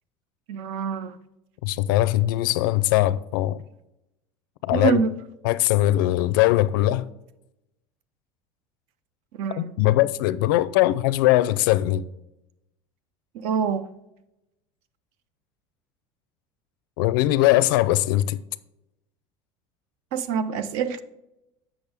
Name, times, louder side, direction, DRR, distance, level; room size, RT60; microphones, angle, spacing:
voice 1, 0.5-1.2 4.7-5.1 9.4-9.7 13.4-13.9 20.1-21.0, right 6 dB, 60° right, 0.7 m, -25 dB
voice 2, 1.6-3.6 4.6-5.0 5.4-7.1 9.5-12.1 17.0-18.4, left 15 dB, 85° left, 0.5 m, -21 dB
8.3 x 6.2 x 3.5 m
cardioid pair, 160°, 11 cm